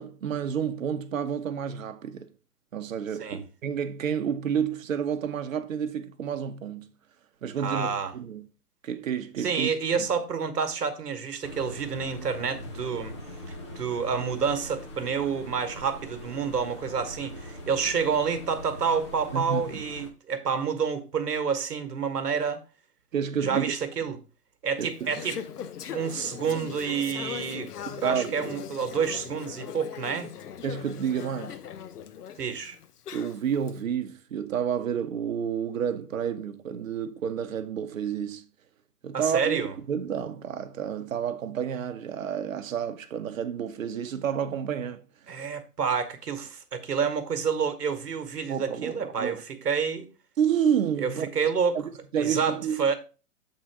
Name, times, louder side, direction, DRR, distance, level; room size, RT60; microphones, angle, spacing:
voice 1, 0.0-2.3 2.7-6.9 7.4-8.5 8.8-9.7 10.0-10.1 19.3-19.6 23.1-23.7 24.8-25.2 26.5-26.6 27.9-28.6 30.6-31.6 33.1-38.4 39.0-39.6 39.9-45.0 48.5-49.4 50.4-51.3 51.7-52.9, right 8 dB, 55° right, 1.0 m, -30 dB
voice 2, 7.6-8.1 9.4-13.1 13.7-22.6 23.4-24.2 24.6-25.4 25.9-30.3 32.4-32.8 39.1-39.8 45.3-50.1 51.0-51.8 52.2-53.0, right 6 dB, 80° right, 1.4 m, -29 dB
sound 1, 11.4-20.1, left 1 dB, 20° left, 0.6 m, -42 dB
Conversation / Chatter, 24.8-33.7, left 8 dB, 75° left, 0.9 m, -40 dB
7.2 x 3.8 x 4.5 m
hypercardioid pair, 150°, 47 cm